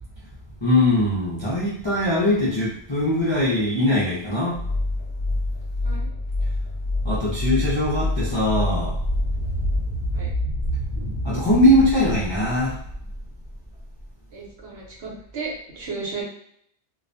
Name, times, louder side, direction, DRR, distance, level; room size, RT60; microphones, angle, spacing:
voice 1, 0.6-4.6 7.0-8.9 11.2-12.8, left 1 dB, 40° left, -8 dB, 0.4 m, -21 dB
sound 1, 4.5-9.8, left 2 dB, 65° left, 0.8 m, -26 dB
sound 2, 6.9-14.0, equal, 45° right, 0.8 m, -30 dB
voice 2, 14.3-16.2, right 4 dB, 70° right, -3 dB, 1.0 m, -34 dB
2.3 x 2.1 x 2.5 m, 0.67 s
omnidirectional pair, 1.2 m